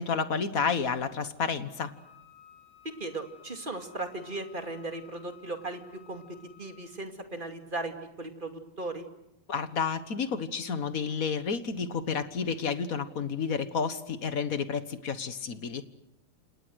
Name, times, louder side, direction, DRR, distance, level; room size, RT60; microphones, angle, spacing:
voice 1, 0.0-1.9 9.5-15.8, left 5 dB, 45° left, 11 dB, 1.6 m, -30 dB
Wind instrument woodwind instrument, 1.8-7.0, left 10 dB, 85° left, 7.9 m, -56 dB
voice 2, 3.0-5.8 6.1-9.0, right 2 dB, 25° right, 5 dB, 2.5 m, -37 dB
29.0 x 27.5 x 6.4 m, 0.88 s
omnidirectional pair, 2.3 m